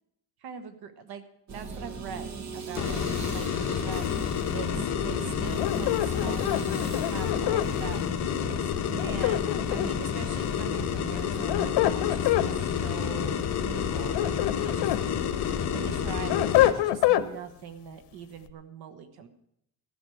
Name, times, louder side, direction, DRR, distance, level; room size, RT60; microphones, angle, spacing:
voice 1, 0.4-1.2 1.5-2.3 2.5-4.0 4.5-8.0 8.5-15.0 15.7-19.3, right 7 dB, 65° right, 9 dB, 1.3 m, -42 dB
sound 1, 1.5-12.6 12.9-13.2, right 3 dB, 45° right, 1.3 m, -42 dB
sound 2, 2.7-16.7, left 8 dB, 45° left, 1.1 m, -29 dB
sound 3, 5.6-7.7 9.0-10.1 11.2-12.5 13.9-15.0 15.5-17.3, left 14 dB, 80° left, 0.9 m, -26 dB
15.0 x 6.2 x 8.5 m, 0.76 s
cardioid pair, 165°, 40 cm